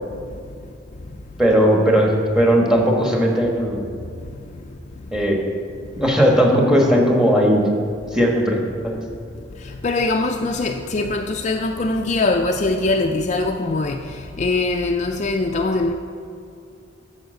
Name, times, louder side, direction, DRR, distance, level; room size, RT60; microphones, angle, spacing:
voice 1, 1.4-3.8 5.1-5.4 6.0-7.6 8.1-8.6 8.8-9.0, equal, 5° right, 0 dB, 1.4 m, -17 dB
voice 2, 9.8-14.0 14.4-15.9, left 2 dB, 40° left, 3 dB, 0.4 m, -22 dB
9.4 x 7.1 x 6.5 m, 2.5 s
head